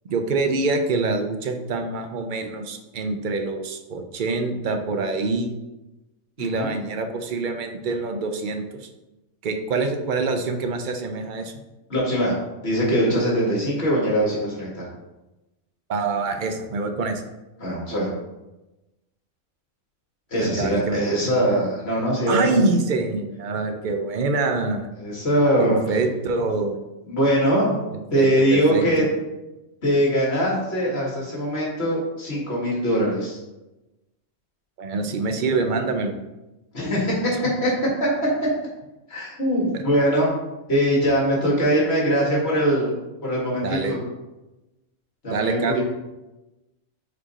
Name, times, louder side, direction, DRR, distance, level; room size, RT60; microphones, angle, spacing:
voice 1, 0.1-5.5 6.4-8.6 9.4-11.5 15.9-17.2 20.3-21.2 22.3-24.9 25.6-26.8 27.9-29.1 34.8-36.1 39.7-39.8 43.6-43.9 45.3-45.8, right 3 dB, 50° right, 6 dB, 0.6 m, -25 dB
voice 2, 6.4-6.7 11.9-12.3 12.6-14.9 17.6-18.1 20.3-22.6 25.0-25.8 27.1-27.8 28.1-29.0 29.8-33.4 36.7-37.7 38.0-38.1 39.1-40.3 40.7-44.0 45.2-45.8, equal, 50° left, -4 dB, 2.1 m, -22 dB
5.0 x 4.5 x 4.2 m, 1.0 s
omnidirectional pair, 1.4 m